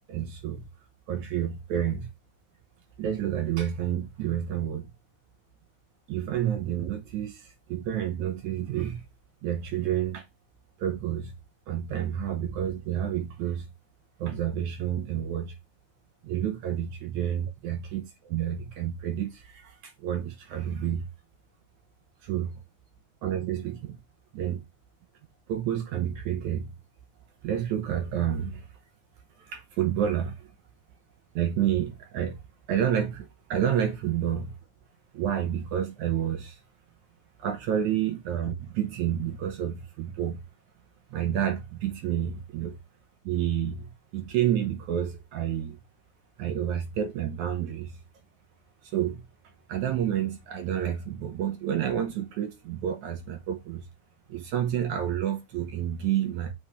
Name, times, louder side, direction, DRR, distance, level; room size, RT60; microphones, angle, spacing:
voice 1, 0.1-0.6 1.1-2.1 3.0-4.9 6.1-9.1 9.4-10.3 10.8-11.3 11.7-13.7 14.2-15.6 16.2-21.1 22.2-22.5 23.2-24.0 24.3-24.6 25.5-26.7 27.4-28.7 29.4-30.5 31.4-32.4 32.7-34.5 35.1-36.6 37.4-40.4 41.1-42.8 43.2-45.8 46.4-48.0 48.8-49.2 49.7-53.9 54.3-56.5, right 10 dB, 75° right, 2.1 m, -29 dB
7.5 x 4.7 x 3.5 m
omnidirectional pair, 3.8 m